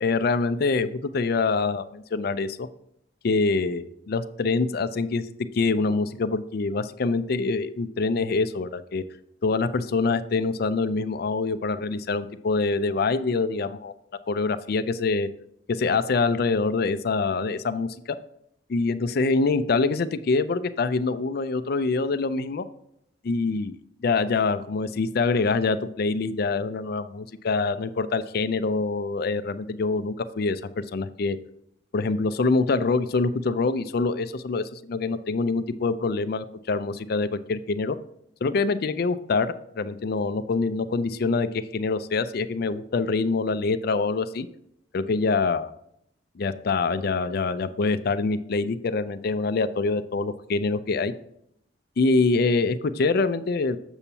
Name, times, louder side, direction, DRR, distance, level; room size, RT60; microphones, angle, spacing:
voice 1, 0.0-2.7 3.2-5.2 5.5-9.0 9.4-13.9 14.3-15.3 15.7-17.9 18.7-22.6 23.2-23.8 24.0-31.4 31.9-38.0 38.4-44.5 44.9-45.7 46.4-51.1 52.0-53.8, left 3 dB, 60° left, 13 dB, 0.4 m, -25 dB
7.1 x 6.9 x 2.8 m, 0.74 s
head